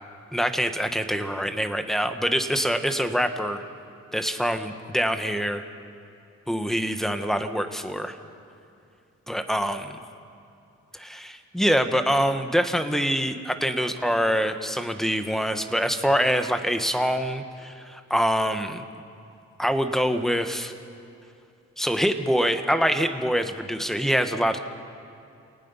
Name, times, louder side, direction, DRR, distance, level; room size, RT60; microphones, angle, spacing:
voice 1, 0.3-3.6 4.1-5.6 6.5-8.2 9.3-10.0 10.9-18.8 19.6-20.7 21.8-24.6, equal, ahead, 8 dB, 1.4 m, -25 dB
28.0 x 18.5 x 5.6 m, 2.5 s
cardioid pair, 90°, 30 cm